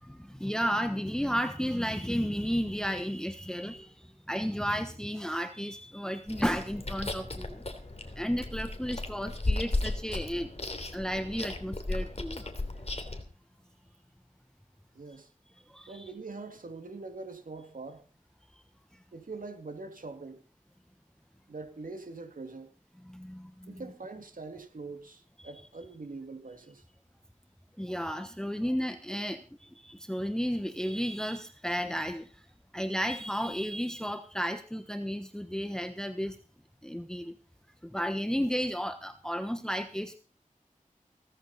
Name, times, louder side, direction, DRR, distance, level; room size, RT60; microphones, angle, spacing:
voice 1, 0.0-7.6 8.1-12.5 12.9-13.1 15.7-16.1 23.0-23.8 25.4-25.5 27.8-32.4 32.7-36.4 36.8-37.3 37.8-40.2, equal, 5° left, 1.2 m, -33 dB
Chewing mastication, 6.3-13.2, left 2 dB, 50° left, 3.1 m, -35 dB
voice 2, 14.9-15.3 15.9-18.1 19.1-20.4 21.5-22.7 23.7-26.8, right 3 dB, 75° right, 2.4 m, -43 dB
17.5 x 14.0 x 4.2 m
wide cardioid pair, 60°, 14 cm